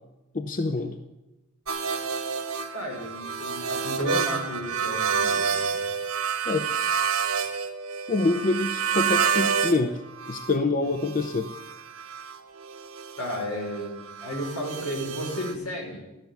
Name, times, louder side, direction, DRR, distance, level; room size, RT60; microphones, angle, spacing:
voice 1, 0.3-1.0 6.5-6.7 8.1-11.5, left 2 dB, 35° left, 8 dB, 0.6 m, -26 dB
sound 1, 1.7-9.8 10.1-15.5, right 6 dB, 75° right, 1.3 m, -29 dB
voice 2, 2.7-5.8 13.2-16.0, equal, 85° left, 0 dB, 4.4 m, -33 dB
13.0 x 7.1 x 9.1 m, 0.99 s
head